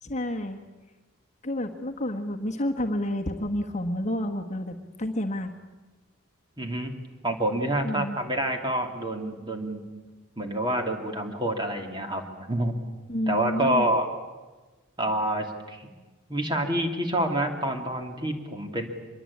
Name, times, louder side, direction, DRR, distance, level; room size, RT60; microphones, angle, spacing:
voice 1, 0.0-0.6 1.4-5.5 7.8-8.2 13.1-13.9, left 1 dB, 30° left, 4 dB, 1.4 m, -30 dB
voice 2, 6.6-6.9 7.2-9.8 10.4-12.2 12.5-12.7 13.3-14.1 15.0-15.9 16.3-18.9, right 1 dB, 20° right, 3 dB, 2.9 m, -27 dB
25.0 x 22.0 x 8.7 m, 1.2 s
head